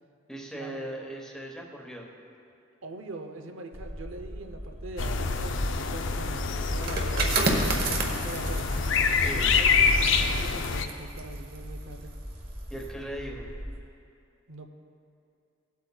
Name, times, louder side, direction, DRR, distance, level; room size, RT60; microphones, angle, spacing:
voice 1, 0.3-2.1 9.2-9.5 12.7-13.5, right 1 dB, 5° left, -1 dB, 0.9 m, -38 dB
voice 2, 2.8-7.4 8.0-8.7 9.2-12.1 14.5-14.7, right 2 dB, 85° right, 5 dB, 0.7 m, -42 dB
sound 1, 3.7-13.8, equal, 15° right, 1.3 m, -41 dB
sound 2, 5.0-10.8, left 4 dB, 65° left, 0.5 m, -26 dB
sound 3, 6.7-12.2 12.6-12.9, right 3 dB, 50° right, 1.0 m, -32 dB
17.0 x 8.2 x 2.3 m, 2.6 s
head